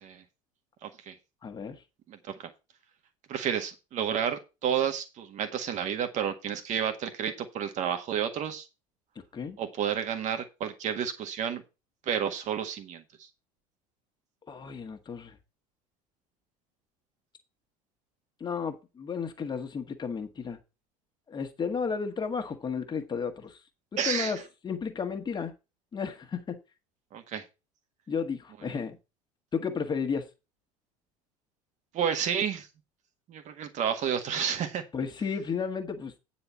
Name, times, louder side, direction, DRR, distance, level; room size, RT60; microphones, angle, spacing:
voice 1, 0.8-1.1 2.1-2.5 3.3-8.7 9.6-11.6 12.0-13.3 24.0-24.3 27.1-27.4 31.9-32.7 33.3-34.8, right 8 dB, 40° right, 8 dB, 1.7 m, -31 dB
voice 2, 1.4-1.8 9.3-9.6 14.5-15.4 18.4-20.6 21.3-23.6 24.0-24.4 24.6-25.5 25.9-26.5 28.1-29.0 29.5-30.3 34.9-36.2, left 6 dB, 25° left, 5 dB, 1.7 m, -33 dB
9.6 x 4.3 x 6.9 m, 0.27 s
figure-of-eight pair, 65°, 18 cm